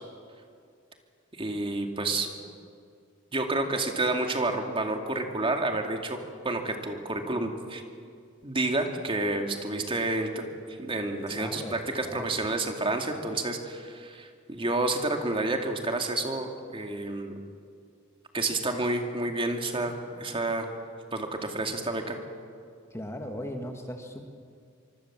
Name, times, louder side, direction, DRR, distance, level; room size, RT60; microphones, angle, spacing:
voice 1, 1.3-2.3 3.3-6.2 6.4-7.8 8.4-17.3 18.3-20.6 21.1-22.2, right 2 dB, 25° right, 4 dB, 2.4 m, -29 dB
voice 2, 11.3-12.4 22.9-24.3, equal, 15° left, 4 dB, 1.7 m, -38 dB
25.5 x 24.0 x 7.5 m, 2.3 s
head